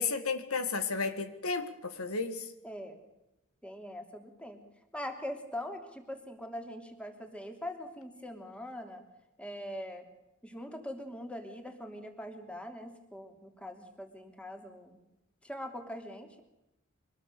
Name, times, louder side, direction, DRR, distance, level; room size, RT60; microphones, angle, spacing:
voice 1, 0.0-2.5, left 4 dB, 75° left, 10 dB, 2.0 m, -33 dB
voice 2, 2.6-3.0 3.6-4.6 4.9-9.0 9.4-10.1 10.4-15.0 15.4-16.4, equal, 5° left, 5 dB, 3.0 m, -42 dB
24.5 x 20.0 x 6.9 m, 0.91 s
head